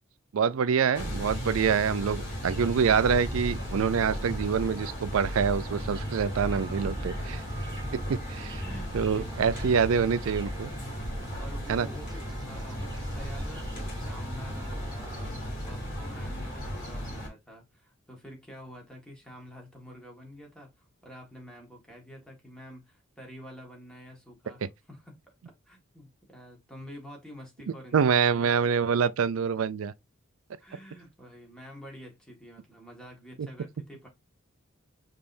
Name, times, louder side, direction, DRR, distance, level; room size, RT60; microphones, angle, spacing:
voice 1, 0.3-7.4 8.1-8.6 8.9-10.7 11.7-11.9 24.6-24.7 27.9-29.9 33.4-33.5, right 6 dB, 80° right, 0.4 m, -26 dB
sound 1, 0.9-17.3, equal, 45° left, 2.5 m, -35 dB
sound 2, 2.8-15.3, right 2 dB, 20° right, 0.4 m, -47 dB
voice 2, 8.6-9.7 11.4-15.3 15.6-25.1 25.7-28.5 30.6-34.1, equal, 5° left, 1.7 m, -48 dB
5.2 x 3.3 x 2.6 m
head